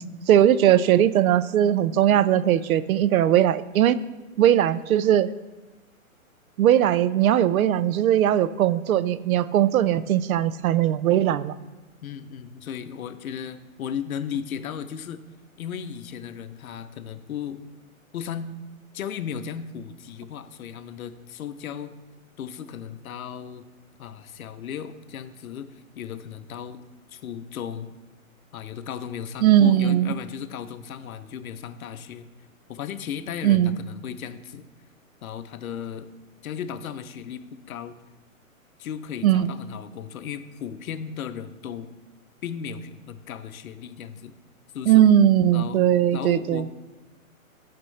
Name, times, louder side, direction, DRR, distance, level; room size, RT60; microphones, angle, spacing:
voice 1, 0.0-4.0 4.4-5.3 6.6-11.5 29.4-30.1 33.4-33.8 39.2-39.5 44.9-46.7, right 11 dB, 80° right, 17 dB, 0.5 m, -19 dB
voice 2, 12.0-15.2 15.6-17.6 18.1-18.5 18.9-21.9 22.4-23.6 24.0-26.8 27.1-27.9 28.5-32.3 32.7-34.7 35.2-36.1 36.4-38.0 38.8-41.9 42.4-44.4 44.7-45.0 45.5-46.7, left 8 dB, 75° left, 11 dB, 0.7 m, -35 dB
11.5 x 4.3 x 3.2 m, 1.1 s
hypercardioid pair, 175°, 42 cm